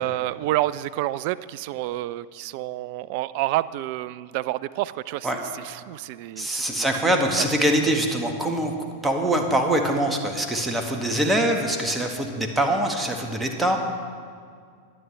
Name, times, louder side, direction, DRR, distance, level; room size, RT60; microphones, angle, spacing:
voice 1, 0.0-6.9 7.4-7.5, right 16 dB, 45° right, 18 dB, 0.3 m, -29 dB
voice 2, 6.4-8.7 9.0-13.8, right 1 dB, 10° right, 3 dB, 1.6 m, -23 dB
20.5 x 9.5 x 3.4 m, 2.1 s
figure-of-eight pair, 90°, 0 cm